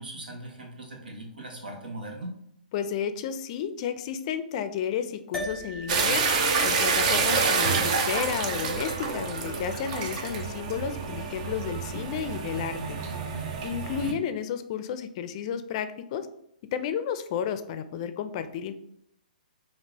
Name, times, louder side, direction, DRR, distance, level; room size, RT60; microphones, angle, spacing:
voice 1, 0.0-2.3 14.0-14.1, right 1 dB, 85° right, 1 dB, 1.3 m, -39 dB
voice 2, 2.7-6.2 6.6-13.0 13.6-16.3 16.7-18.7, left 8 dB, 45° left, 10 dB, 0.4 m, -32 dB
sound 1, 5.3-9.9, left 1 dB, 5° left, 0.8 m, -42 dB
sound 2, 5.9-14.1, right 4 dB, 45° right, 0.6 m, -28 dB
5.2 x 2.8 x 2.8 m, 0.74 s
hypercardioid pair, 135°, 5 cm